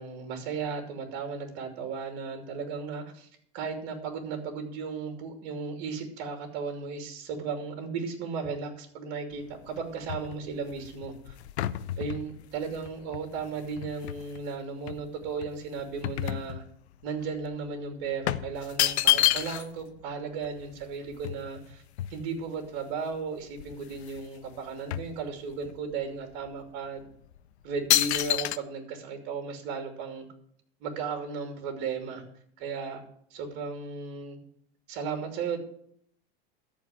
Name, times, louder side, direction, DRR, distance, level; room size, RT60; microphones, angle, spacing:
voice 1, 0.0-3.3 3.5-11.3 12.0-16.6 17.0-21.8 22.1-27.0 27.6-30.3 30.8-32.2 32.6-33.0 33.3-34.4 34.9-35.6, right 5 dB, 60° right, 4 dB, 2.8 m, -35 dB
sound 1, 9.3-14.4 14.9-17.0 17.3-17.5 18.3-19.8 20.1-20.2 20.4-22.6 23.1-23.2 23.5-24.3 24.5-25.8 26.3-26.5 27.1-27.4 27.9-28.6, left 14 dB, 90° left, 0.7 m, -29 dB
14.0 x 4.7 x 8.8 m, 0.67 s
supercardioid pair, 120°, 32 cm